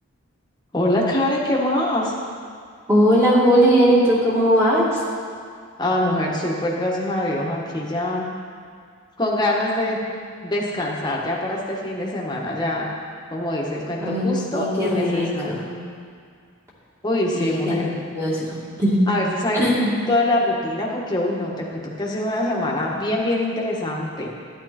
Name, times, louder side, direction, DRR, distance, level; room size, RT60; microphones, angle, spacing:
voice 1, 0.7-2.1 5.8-8.3 9.2-10.0 10.4-12.9 13.3-15.5 17.0-17.8 19.1-24.3, left 1 dB, 20° left, -3 dB, 1.7 m, -24 dB
voice 2, 2.9-5.0 14.0-15.6 17.3-19.1 19.5-20.0, equal, 15° right, -7 dB, 2.6 m, -19 dB
12.5 x 10.5 x 4.4 m, 2.2 s
head